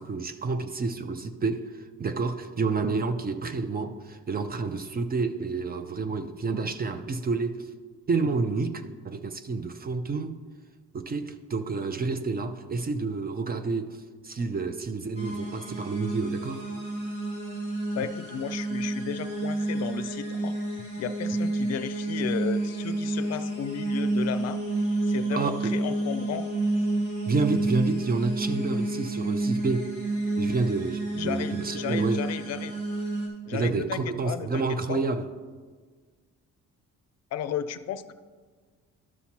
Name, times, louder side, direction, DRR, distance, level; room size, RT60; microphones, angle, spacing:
voice 1, 0.0-7.7 8.1-10.4 10.9-16.7 25.3-25.8 27.3-29.9 30.4-32.3 33.5-35.3, right 4 dB, 30° right, 0.5 m, -29 dB
sound 1, 15.2-33.3, right 2 dB, 85° right, 2.3 m, -29 dB
voice 2, 17.9-20.6 21.0-24.6 25.0-26.5 31.2-32.7 33.5-35.0 37.3-38.1, left 9 dB, 60° left, 0.5 m, -34 dB
12.5 x 5.8 x 2.9 m
cardioid pair, 90°, 30 cm